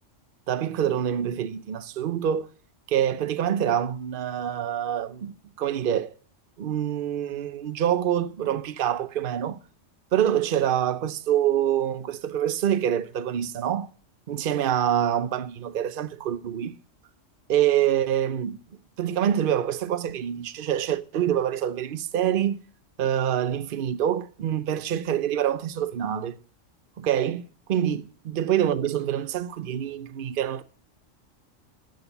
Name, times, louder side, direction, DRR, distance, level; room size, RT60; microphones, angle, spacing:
voice 1, 0.5-2.5 2.9-6.1 6.6-9.6 10.1-13.9 14.3-16.8 17.5-18.6 19.0-22.6 23.0-26.4 27.0-30.6, right 10 dB, 50° right, 0.8 m, -26 dB
13.5 x 6.5 x 7.2 m
omnidirectional pair, 1.3 m